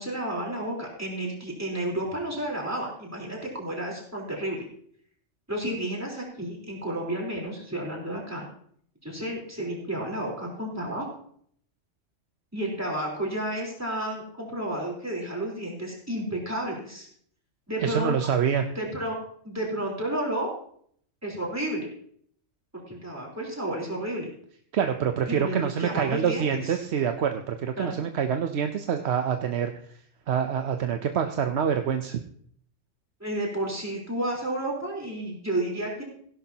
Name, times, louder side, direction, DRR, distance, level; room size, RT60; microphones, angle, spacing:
voice 1, 0.0-4.7 5.5-8.4 9.0-11.0 12.5-17.1 17.7-18.3 18.7-19.2 19.4-20.5 21.2-21.9 22.9-24.3 25.3-26.8 27.8-28.0 33.2-36.0, right 1 dB, 10° right, -3 dB, 3.8 m, -31 dB
voice 2, 17.8-18.7 24.7-29.7 30.3-32.2, right 8 dB, 65° right, 6 dB, 0.9 m, -26 dB
16.5 x 11.5 x 2.8 m, 0.62 s
omnidirectional pair, 1.2 m